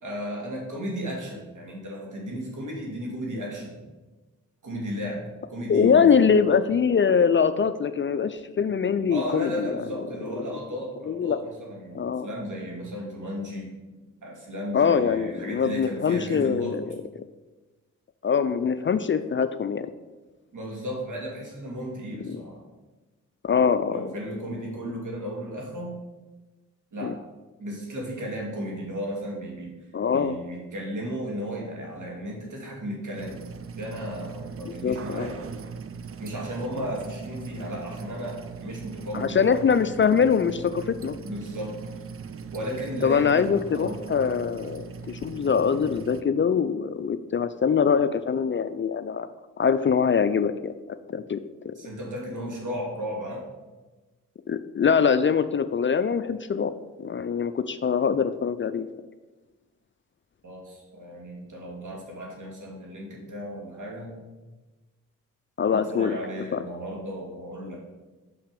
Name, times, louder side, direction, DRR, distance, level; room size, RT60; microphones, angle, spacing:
voice 1, 0.0-3.8 4.6-5.2 5.5-6.3 9.1-13.7 14.2-16.8 20.5-22.6 23.9-26.0 26.9-27.1 27.6-29.8 30.1-33.4 33.8-35.4 36.2-39.5 41.2-41.7 42.5-43.5 43.7-44.0 51.8-53.4 60.4-64.1 65.6-67.8, equal, 60° right, -1 dB, 2.5 m, -34 dB
voice 2, 5.7-9.7 11.1-11.4 11.9-12.3 14.7-16.9 18.2-19.9 22.3-22.4 23.4-24.0 27.0-27.1 29.9-30.3 34.8-35.3 39.1-41.2 43.0-49.3 49.6-50.7 51.1-51.7 54.5-58.9 65.6-66.2 66.5-66.6, left 6 dB, 35° left, 11 dB, 0.4 m, -23 dB
sound 1, 33.1-46.2, right 5 dB, 40° right, 0.6 m, -40 dB
5.6 x 5.6 x 5.2 m, 1.2 s
supercardioid pair, 45°, 33 cm